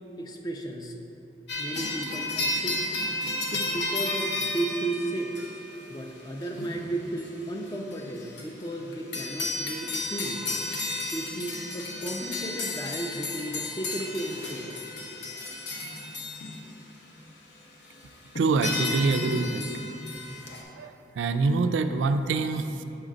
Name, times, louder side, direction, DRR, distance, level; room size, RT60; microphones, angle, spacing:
voice 1, 0.2-1.0 1.6-2.8 3.5-5.3 5.9-10.4 11.1-14.8, right 1 dB, 20° left, 2 dB, 0.4 m, -34 dB
sound 1, 1.5-16.8 17.9-18.0 18.4-20.6, left 2 dB, 65° left, 0.8 m, -33 dB
voice 2, 18.4-19.7 20.8-22.8, right 4 dB, 80° right, 9 dB, 0.3 m, -25 dB
6.5 x 3.9 x 5.0 m, 3.0 s
head